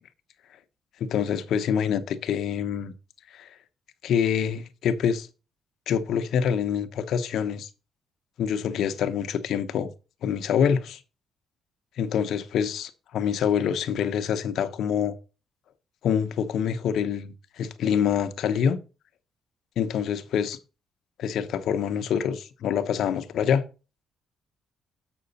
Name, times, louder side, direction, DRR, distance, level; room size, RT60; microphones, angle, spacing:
voice 1, 1.0-2.9 3.3-3.5 4.0-5.3 5.9-7.7 8.4-9.9 10.2-11.0 12.0-15.1 16.0-18.8 19.8-20.6 21.2-23.7, left 8 dB, 75° left, 0.8 m, -26 dB
7.9 x 6.1 x 4.1 m
cardioid pair, 90°, 0 cm